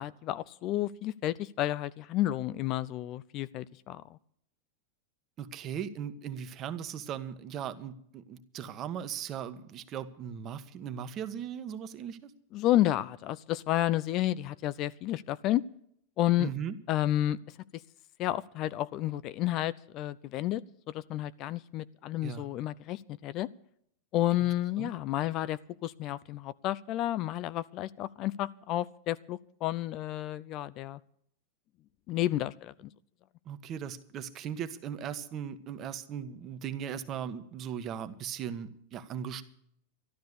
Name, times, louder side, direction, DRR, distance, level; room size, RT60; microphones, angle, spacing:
voice 1, 0.0-4.0 12.5-15.6 16.2-16.5 16.9-17.4 18.2-20.6 20.9-23.5 24.1-31.0 32.1-32.9, left 14 dB, 45° left, 17 dB, 0.6 m, -31 dB
voice 2, 5.4-12.3 16.4-16.8 22.2-22.4 24.8-24.9 33.4-39.4, right 8 dB, 40° right, 10 dB, 1.4 m, -38 dB
13.0 x 12.0 x 6.8 m, 0.68 s
hypercardioid pair, 105°, 0 cm